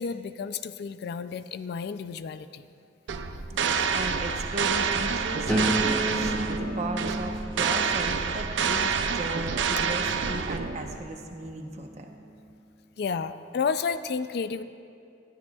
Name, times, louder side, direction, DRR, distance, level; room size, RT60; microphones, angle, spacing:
voice 1, 0.0-2.6 13.0-14.6, left 5 dB, 55° left, 12 dB, 0.3 m, -31 dB
sound 1, 3.1-11.0, right 6 dB, 75° right, 0.5 m, -28 dB
voice 2, 3.5-12.1, right 1 dB, 35° right, 3 dB, 0.9 m, -36 dB
sound 2, 5.5-11.3 11.9-12.3, right 1 dB, 10° left, 2.2 m, -33 dB
20.0 x 12.5 x 2.3 m, 2.5 s
head